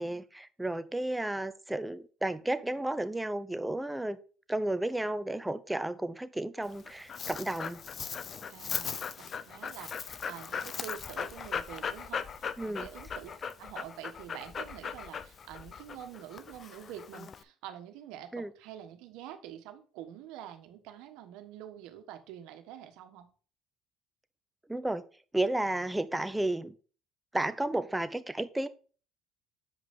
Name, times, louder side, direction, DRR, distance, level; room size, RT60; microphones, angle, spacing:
voice 1, 0.0-4.2 4.5-7.8 12.6-12.9 18.3-18.5 24.7-25.0 25.3-26.7 27.3-28.7, right 1 dB, 5° right, 0.7 m, -32 dB
Dog, 6.6-17.4, left 6 dB, 40° left, 0.5 m, -39 dB
voice 2, 8.5-13.3 13.6-23.3, right 11 dB, 80° right, 1.4 m, -46 dB
8.0 x 5.1 x 3.6 m
supercardioid pair, 100°, 0 cm